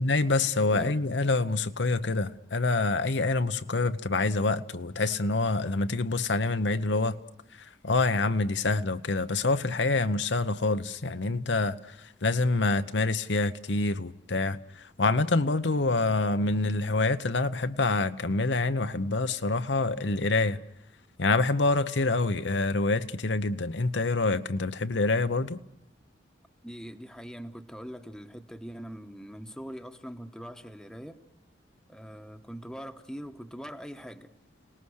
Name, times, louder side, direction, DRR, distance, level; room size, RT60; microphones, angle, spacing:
voice 1, 0.0-7.2 7.6-20.6 21.2-25.6, left 3 dB, 75° left, 0.9 m, -26 dB
voice 2, 26.6-31.2 31.9-34.3, equal, 5° left, 1.2 m, -42 dB
30.0 x 19.0 x 6.5 m
head